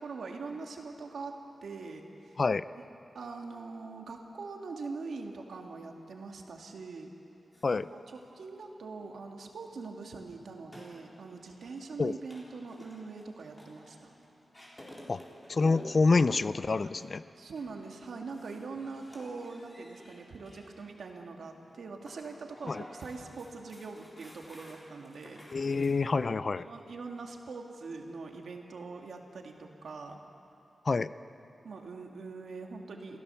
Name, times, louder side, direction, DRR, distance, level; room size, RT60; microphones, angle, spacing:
voice 1, 0.0-1.3 1.6-2.4 2.8-2.9 3.1-7.1 7.7-14.1 17.4-25.4 26.5-30.2 31.6-33.2, right 4 dB, 85° right, 2 dB, 2.1 m, -43 dB
sound 1, 7.5-25.9, equal, 15° left, 3.7 m, -53 dB
voice 2, 15.5-17.2 22.7-22.8 25.5-26.7 30.9-31.1, left 4 dB, 40° left, 15 dB, 0.4 m, -27 dB
27.5 x 15.5 x 7.0 m, 2.8 s
wide cardioid pair, 175°, 0 cm